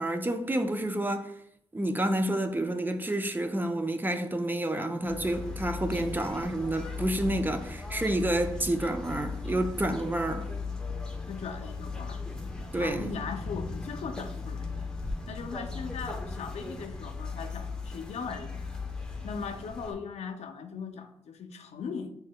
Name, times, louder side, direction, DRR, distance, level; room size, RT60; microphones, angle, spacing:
voice 1, 0.0-1.3 1.7-10.5 12.7-13.1, right 1 dB, 15° right, 0.4 m, -29 dB
sound 1, 5.0-19.9, left 4 dB, 5° left, 0.8 m, -37 dB
voice 2, 11.3-12.2 12.8-14.9 15.3-18.8 19.2-22.1, left 5 dB, 85° left, 0.5 m, -39 dB
6.2 x 3.3 x 2.2 m
cardioid pair, 80°, 11 cm